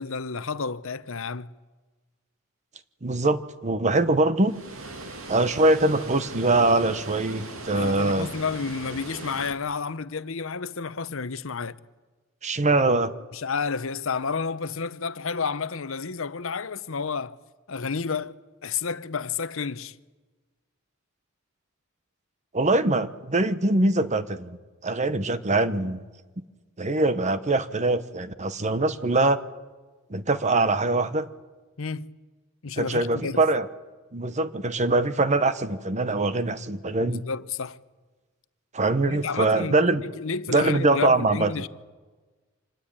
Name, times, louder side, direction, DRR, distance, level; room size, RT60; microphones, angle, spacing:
voice 1, 0.0-1.5 7.7-11.8 13.3-17.4 17.7-19.9 31.8-32.1 32.6-33.4 37.0-37.8 39.1-41.7, left 5 dB, 70° left, 0.8 m, -31 dB
voice 2, 3.0-4.6 5.3-8.3 12.4-13.1 22.5-24.6 24.8-26.0 26.8-29.4 30.1-31.3 32.8-33.7 34.1-37.2 38.7-40.0 40.5-41.5, right 2 dB, 35° right, 1.1 m, -23 dB
Water, 4.4-9.5, right 2 dB, 70° right, 2.9 m, -39 dB
26.0 x 20.0 x 8.9 m
head